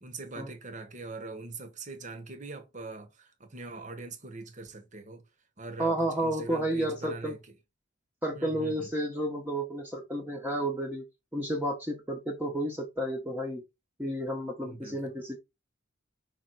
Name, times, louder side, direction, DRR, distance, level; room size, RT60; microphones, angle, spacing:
voice 1, 0.0-5.2 5.6-7.4 8.4-8.9 14.6-15.1, right 3 dB, 40° right, 1.3 m, -42 dB
voice 2, 5.8-7.3 8.2-11.0 11.3-13.6 14.0-15.4, right 1 dB, 10° right, 1.1 m, -31 dB
5.7 x 4.5 x 4.1 m
head